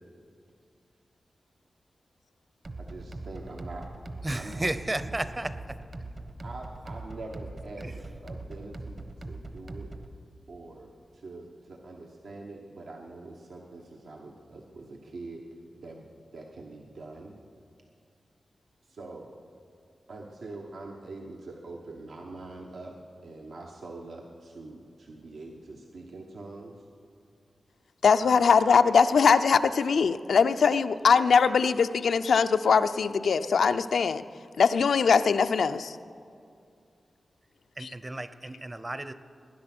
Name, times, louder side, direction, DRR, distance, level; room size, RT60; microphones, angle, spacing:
sound 1, 2.6-10.2, right 2 dB, 45° right, 1.1 m, -41 dB
voice 1, 2.8-3.9 4.3-4.7 6.4-9.9 10.5-15.5 15.8-17.4 18.8-19.3 20.1-23.0 23.2-26.9 28.2-28.9 31.2-31.4, right 2 dB, 80° right, 0 dB, 1.1 m, -44 dB
voice 2, 4.2-5.5 7.8-7.9 37.8-39.1, right 1 dB, 25° right, 13 dB, 0.7 m, -33 dB
voice 3, 28.0-34.2 34.6-36.0 37.8-37.9, left 5 dB, 85° left, 10 dB, 0.5 m, -22 dB
19.5 x 10.5 x 6.0 m, 2.4 s
wide cardioid pair, 90°, 0 cm